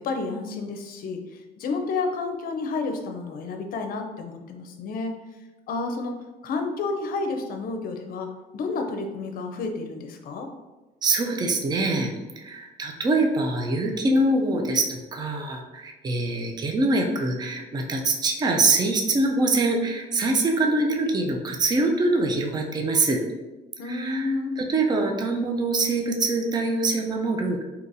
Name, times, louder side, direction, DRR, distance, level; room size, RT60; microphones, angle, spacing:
voice 1, 0.0-5.2 5.7-10.5 23.8-24.6, left 3 dB, 60° left, 5 dB, 0.6 m, -30 dB
voice 2, 11.0-12.1 12.4-23.2 23.8-27.6, right 2 dB, 25° right, 2 dB, 0.5 m, -24 dB
3.9 x 2.8 x 2.6 m, 1.1 s
cardioid pair, 110°, 17 cm